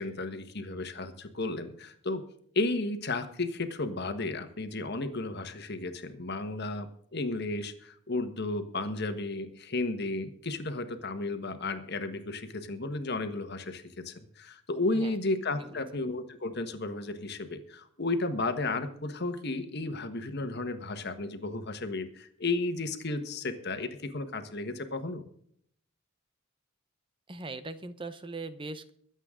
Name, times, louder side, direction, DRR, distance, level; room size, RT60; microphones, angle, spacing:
voice 1, 0.0-2.2 2.5-25.2, left 2 dB, 50° left, 8 dB, 1.4 m, -33 dB
voice 2, 27.3-28.9, right 3 dB, 25° right, 12 dB, 0.8 m, -40 dB
23.0 x 8.2 x 3.8 m, 0.64 s
head